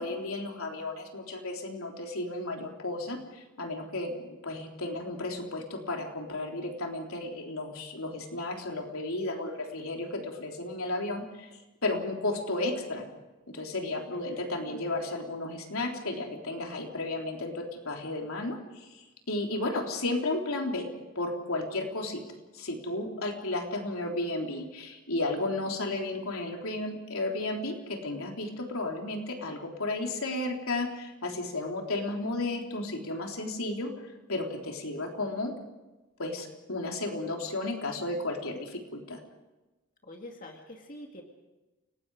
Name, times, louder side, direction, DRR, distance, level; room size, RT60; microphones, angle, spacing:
voice 1, 0.0-11.5 11.8-13.0 13.5-20.9 21.2-22.2 22.5-33.9 34.3-35.5 36.2-39.2, left 2 dB, 85° left, 2 dB, 3.6 m, -33 dB
voice 2, 14.2-14.5 40.0-41.2, left 1 dB, 40° left, 1 dB, 2.3 m, -46 dB
29.0 x 19.5 x 4.9 m, 1.1 s
head